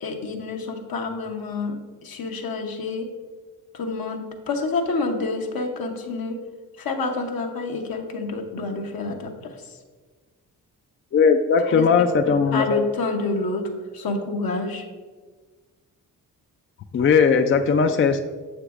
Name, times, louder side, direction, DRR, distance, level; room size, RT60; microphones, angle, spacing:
voice 1, 0.0-1.7 2.0-3.1 3.7-6.4 6.8-9.5 11.7-11.9 12.3-14.8, left 3 dB, 65° left, 3 dB, 1.0 m, -28 dB
voice 2, 11.1-12.8 16.9-18.2, left 5 dB, 35° left, 7 dB, 0.4 m, -18 dB
6.9 x 6.6 x 2.5 m, 1.4 s
supercardioid pair, 50°, 39 cm